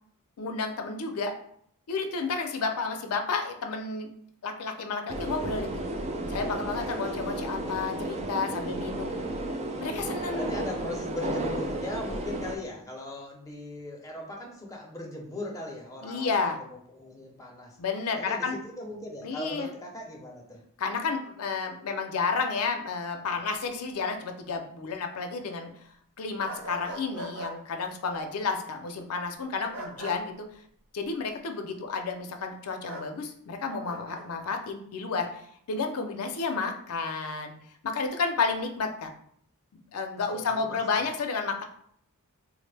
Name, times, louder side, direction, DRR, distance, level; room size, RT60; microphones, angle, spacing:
voice 1, 0.4-1.3 1.9-4.1 4.4-5.8 6.3-9.1 9.8-10.5 16.0-16.6 17.8-18.6 19.2-19.7 20.8-25.7 26.2-30.3 30.9-37.5 37.8-39.1 39.7-41.6, left 4 dB, 75° left, 5 dB, 0.5 m, -31 dB
sound 1, 5.1-12.6, right 1 dB, 30° right, 0.3 m, -33 dB
voice 2, 7.2-7.6 8.2-8.5 10.3-17.8 18.1-20.6 40.3-40.8, left 1 dB, 15° left, -1 dB, 0.6 m, -39 dB
sound 2, 26.4-27.5 29.7-30.2 32.9-33.1 33.8-34.2, right 1 dB, 70° right, 1.0 m, -39 dB
3.6 x 2.1 x 3.2 m, 0.66 s
head